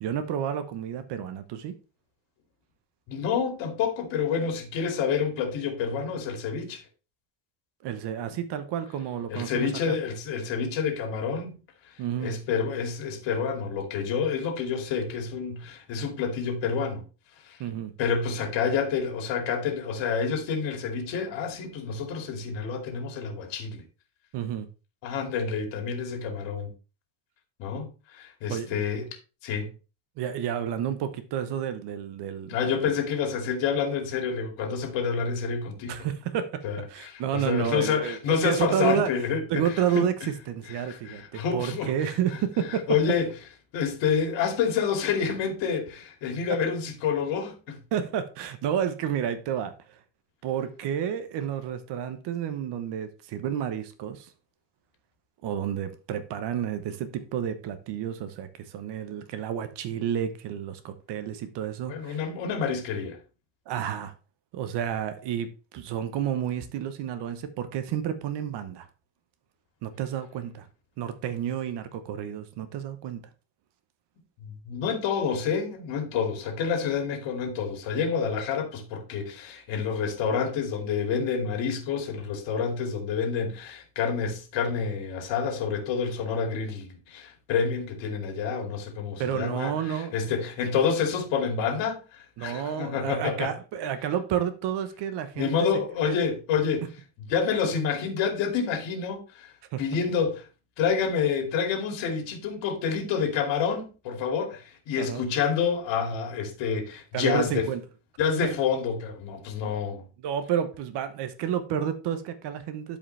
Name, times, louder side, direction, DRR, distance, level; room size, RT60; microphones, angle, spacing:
voice 1, 0.0-1.7 7.8-10.0 12.0-12.3 17.6-17.9 24.3-24.7 28.5-28.8 30.2-32.6 35.8-36.6 36.9-38.2 38.4-39.1 39.5-42.9 47.9-49.7 50.4-54.3 55.4-62.2 63.7-64.1 64.5-65.5 65.7-68.9 69.8-70.7 71.0-73.2 89.2-90.4 92.4-95.5 96.0-96.2 99.7-99.8 104.9-105.2 107.1-107.8 108.4-108.5 110.2-113.0, right 9 dB, 70° right, 1.1 m, -30 dB
voice 2, 3.1-6.8 9.3-11.6 11.9-12.0 12.2-17.0 17.4-17.6 18.0-23.8 25.0-26.7 27.6-29.1 29.4-29.7 32.5-36.1 36.6-40.1 40.7-41.9 42.7-43.3 43.7-47.8 61.9-63.2 74.4-93.5 95.3-96.9 97.3-99.5 99.8-100.5 100.8-107.7 108.2-110.0, left 6 dB, 85° left, 2.7 m, -28 dB
12.0 x 5.1 x 3.3 m
cardioid pair, 155°, 43 cm